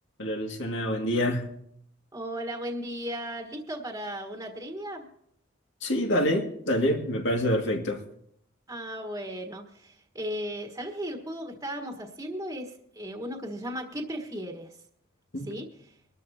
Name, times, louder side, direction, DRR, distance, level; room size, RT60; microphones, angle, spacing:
voice 1, 0.2-1.5 5.8-8.0 15.3-15.5, left 1 dB, 65° left, 2.2 m, -26 dB
voice 2, 2.1-5.1 8.7-14.7 15.4-16.0, equal, 15° right, 1.5 m, -36 dB
24.5 x 13.0 x 2.9 m
head